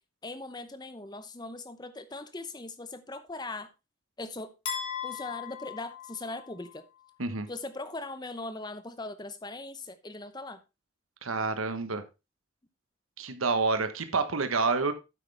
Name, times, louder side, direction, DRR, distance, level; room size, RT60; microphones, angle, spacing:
voice 1, 0.2-3.7 4.2-4.5 5.0-6.8 7.5-10.6, left 2 dB, 20° left, 0.8 m, -40 dB
sound 1, 4.7-6.8, left 8 dB, 80° left, 3.2 m, -38 dB
voice 2, 11.2-12.0 13.2-14.9, right 4 dB, 90° right, 1.2 m, -28 dB
9.2 x 8.1 x 3.4 m
head